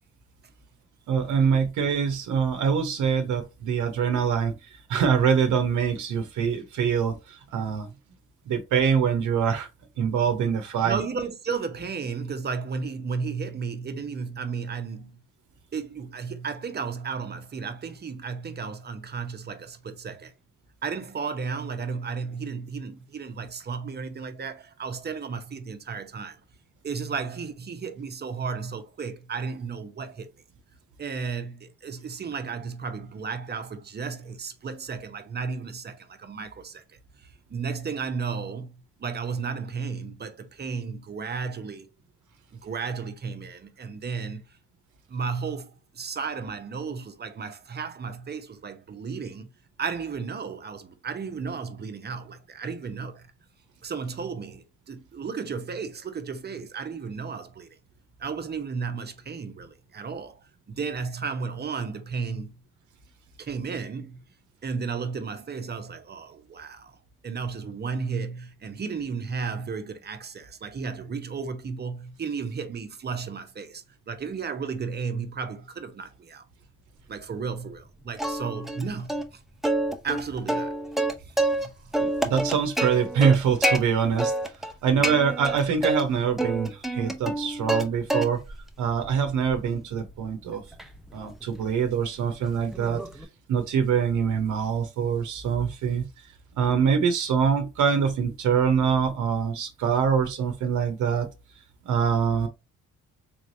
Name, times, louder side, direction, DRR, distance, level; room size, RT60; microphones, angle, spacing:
voice 1, 1.1-4.6 4.9-7.9 8.5-9.7 10.0-11.0 82.0-84.3 84.8-88.4 88.8-90.6 91.1-93.0 93.5-96.1 96.6-101.3 101.9-102.5, right 7 dB, 75° right, 0.8 m, -24 dB
voice 2, 10.8-15.2 15.7-20.3 20.8-26.4 26.8-30.3 31.0-36.8 37.2-41.9 42.5-44.6 45.1-49.5 49.8-53.3 53.8-57.8 58.2-60.4 60.7-62.6 63.4-64.2 64.6-67.0 67.2-76.5 77.1-79.4 80.0-80.7 81.3-82.3 84.9-85.2, right 5 dB, 35° right, 0.8 m, -34 dB
Plucked string instrument, 78.2-78.8 79.1-79.2 79.6-81.7 81.9-83.8 84.2-84.7 85.0-86.0 86.4-87.8 88.1-88.6 89.0-93.2, right 1 dB, ahead, 0.6 m, -27 dB
3.4 x 3.2 x 2.6 m
cardioid pair, 90°, 30 cm